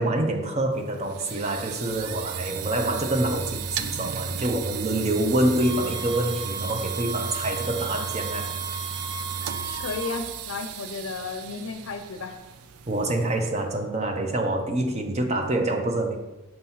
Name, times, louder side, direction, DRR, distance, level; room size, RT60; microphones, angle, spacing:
voice 1, 0.0-8.5 12.9-16.2, right 1 dB, 30° right, 4 dB, 0.6 m, -26 dB
sound 1, 0.7-13.5, right 7 dB, 85° right, 0.4 m, -34 dB
sound 2, 5.6-10.2, right 2 dB, 65° right, 1.0 m, -37 dB
voice 2, 9.8-12.4, left 4 dB, 70° left, 7 dB, 0.7 m, -33 dB
6.7 x 2.9 x 5.5 m, 1.1 s
head